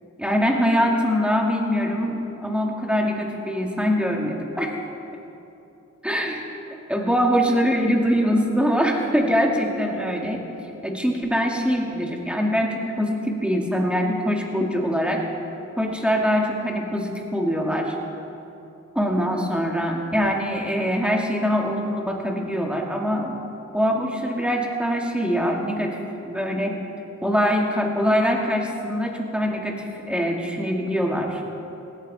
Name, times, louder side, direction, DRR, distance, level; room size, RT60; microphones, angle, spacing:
voice 1, 0.2-4.7 6.0-6.5 6.9-10.4 10.8-15.2 15.8-17.9 18.9-23.4 23.7-26.0 26.2-26.8 27.2-31.4, equal, 5° right, 0 dB, 2.5 m, -23 dB
17.5 x 13.5 x 4.4 m, 2.9 s
cardioid pair, 50°, 30 cm